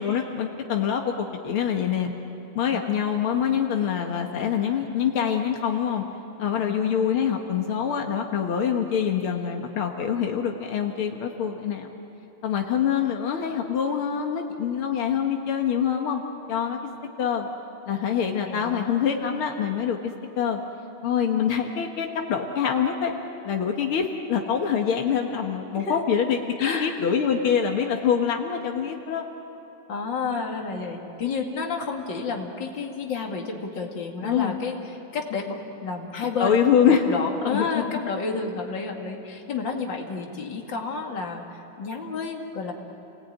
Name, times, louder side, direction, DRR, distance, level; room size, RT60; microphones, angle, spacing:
voice 1, 0.0-2.1 2.6-6.0 6.4-11.9 12.4-16.2 16.5-16.9 17.2-17.5 17.9-20.6 21.0-23.1 23.4-29.2 34.2-34.6 36.4-37.0 37.5-37.8, left 8 dB, 90° left, 3 dB, 2.3 m, -25 dB
voice 2, 18.4-19.0 25.7-26.0 26.6-27.0 29.9-36.6 37.1-42.7, left 4 dB, 60° left, 1 dB, 2.8 m, -31 dB
29.5 x 19.0 x 9.3 m, 2.8 s
omnidirectional pair, 2.3 m